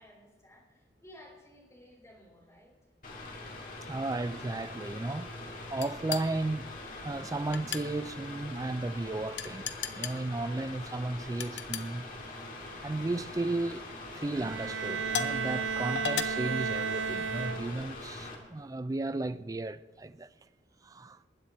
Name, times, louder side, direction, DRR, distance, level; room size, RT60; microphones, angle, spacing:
voice 1, 0.0-2.8, left 1 dB, 15° left, 3.5 m, -55 dB
Mechanical fan, 3.0-18.3, left 2 dB, 45° left, 2.4 m, -43 dB
voice 2, 3.9-5.3 5.7-12.0 12.8-13.9 14.1-20.3 20.8-21.2, right 2 dB, 20° right, 0.3 m, -34 dB
sound 1, 5.8-6.3 7.5-7.9 9.4-10.2 11.4-11.9 12.9-13.2 13.8-13.9 15.1-15.4 16.0-16.2, left 9 dB, 70° left, 0.8 m, -34 dB
Bowed string instrument, 14.3-18.0, right 6 dB, 85° right, 0.5 m, -33 dB
20.5 x 8.9 x 4.3 m
head